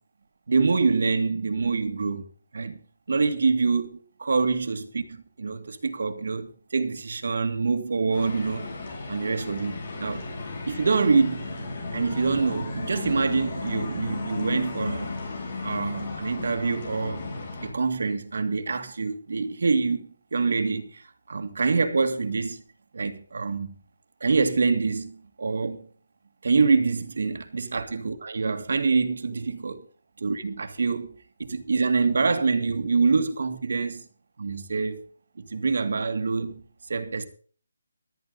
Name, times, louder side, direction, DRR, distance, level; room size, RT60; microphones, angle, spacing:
voice 1, 0.5-2.2 2.5-2.8 3.1-8.7 9.1-10.2 10.6-11.4 11.9-15.1 15.6-17.2 17.6-22.6 22.9-23.7 24.2-25.9 26.4-29.8 30.2-31.1 31.4-34.0 34.4-35.0 35.4-36.6 36.9-37.3, right 4 dB, 55° right, 1.8 m, -25 dB
sound 1, 8.1-17.7, left 3 dB, 35° left, 7.3 m, -34 dB
14.5 x 12.5 x 3.9 m
hypercardioid pair, 175°, 0 cm